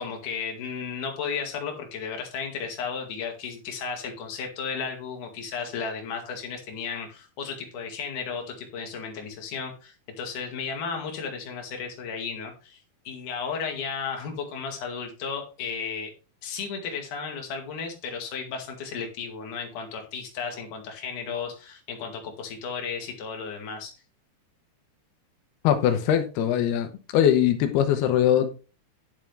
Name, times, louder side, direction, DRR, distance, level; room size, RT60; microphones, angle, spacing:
voice 1, 0.0-16.1 16.4-23.9, left 6 dB, 55° left, 3.4 m, -34 dB
voice 2, 25.6-28.5, left 10 dB, 90° left, 3.0 m, -21 dB
10.5 x 7.3 x 3.4 m
omnidirectional pair, 4.5 m